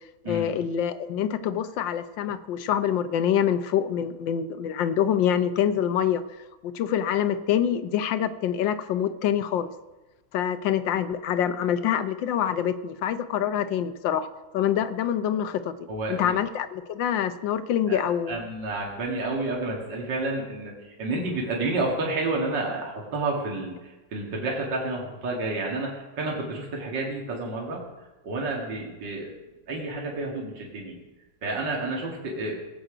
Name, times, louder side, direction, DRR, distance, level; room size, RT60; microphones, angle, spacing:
voice 1, 0.2-6.2 6.6-9.7 10.3-14.3 14.5-15.7 16.1-18.4, left 9 dB, 75° left, 12 dB, 1.4 m, -25 dB
voice 2, 15.9-16.3 17.9-27.8 28.2-29.4 29.7-31.0 31.4-32.6, right 2 dB, 65° right, -2 dB, 2.6 m, -30 dB
18.5 x 8.3 x 5.0 m, 1.1 s
omnidirectional pair, 2.1 m